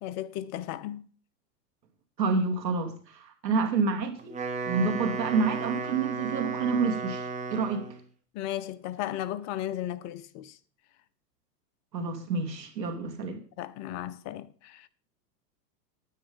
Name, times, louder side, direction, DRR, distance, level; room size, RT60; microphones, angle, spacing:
voice 1, 0.0-1.1 8.3-10.6 13.6-14.9, left 12 dB, 35° left, 0.7 m, -35 dB
voice 2, 2.2-4.4 4.6-7.8 11.9-13.4, right 4 dB, 85° right, 2.8 m, -28 dB
Wind instrument woodwind instrument, 4.2-8.1, right 4 dB, 15° right, 1.7 m, -34 dB
9.8 x 9.3 x 5.4 m
hypercardioid pair, 115°, 49 cm